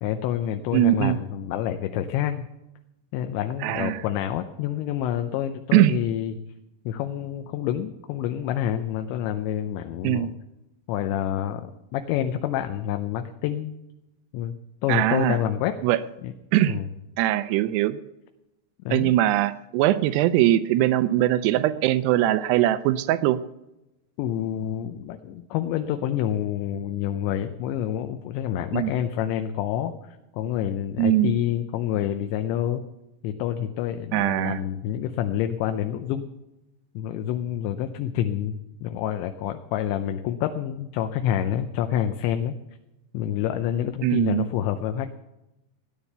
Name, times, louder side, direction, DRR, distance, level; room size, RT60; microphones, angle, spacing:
voice 1, 0.0-2.5 3.1-6.4 6.9-10.3 10.9-13.7 14.3-14.5 14.8-15.7 16.2-16.3 16.7-16.9 18.9-19.1 24.2-32.8 33.2-36.3 37.0-42.6 43.1-45.2, left 10 dB, 80° left, 7 dB, 2.9 m, -28 dB
voice 2, 0.7-1.2 3.6-4.0 5.7-6.0 10.0-10.3 14.9-15.4 15.8-16.0 16.5-16.8 17.2-18.0 18.9-23.4 28.7-28.9 31.0-31.3 34.1-34.6 44.0-44.5, right 14 dB, 80° right, 13 dB, 2.5 m, -21 dB
16.5 x 10.0 x 6.7 m, 0.93 s
omnidirectional pair, 5.3 m